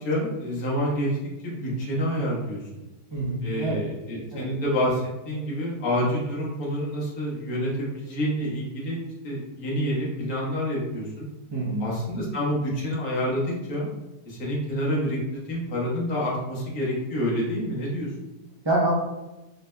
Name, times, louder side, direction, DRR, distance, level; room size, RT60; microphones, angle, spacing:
voice 1, 0.0-1.2 1.4-2.6 3.4-9.0 9.2-11.3 11.8-13.9 14.3-18.1, equal, 60° left, -6 dB, 1.7 m, -28 dB
voice 2, 3.1-3.8 4.3-4.5 11.5-11.9 18.6-18.9, right 1 dB, 35° right, -5 dB, 0.4 m, -26 dB
4.1 x 3.9 x 2.2 m, 1.0 s
omnidirectional pair, 1.9 m